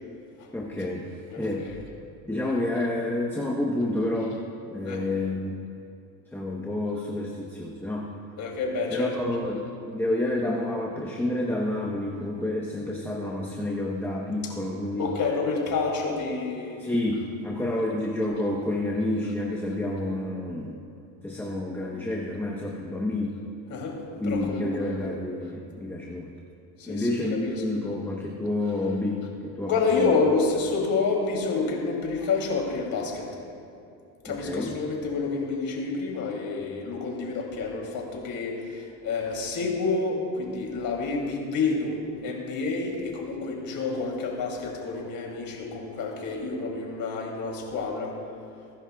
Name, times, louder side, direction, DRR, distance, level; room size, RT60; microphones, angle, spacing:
voice 1, 0.5-1.1 1.4-1.8 2.3-4.4 4.6-5.6 6.3-8.1 8.9-15.1 16.8-20.8 21.2-23.4 24.2-26.3 26.9-30.2 34.3-34.7, left 1 dB, 5° left, -2 dB, 1.0 m, -29 dB
voice 2, 1.3-1.8 4.8-5.0 8.4-9.1 15.0-17.0 23.7-24.0 24.2-25.0 26.8-27.5 29.7-33.3 34.2-48.2, left 4 dB, 55° left, -1 dB, 3.0 m, -28 dB
22.5 x 11.0 x 2.4 m, 2.5 s
cardioid pair, 110°, 41 cm